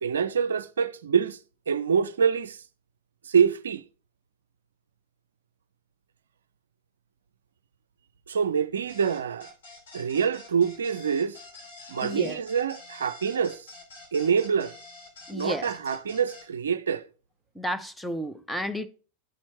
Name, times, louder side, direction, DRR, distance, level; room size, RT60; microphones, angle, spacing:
voice 1, 0.0-1.4 1.7-2.6 3.3-3.8 8.3-9.5 9.9-11.4 11.9-13.7 14.1-14.7 15.3-17.1, right 7 dB, 65° right, 0.4 m, -25 dB
sound 1, 8.9-16.5, left 3 dB, 65° left, 3.1 m, -47 dB
voice 2, 12.0-12.4 15.3-15.7 17.5-18.9, equal, 5° left, 0.6 m, -32 dB
11.0 x 4.4 x 4.3 m
figure-of-eight pair, 90°, 0 cm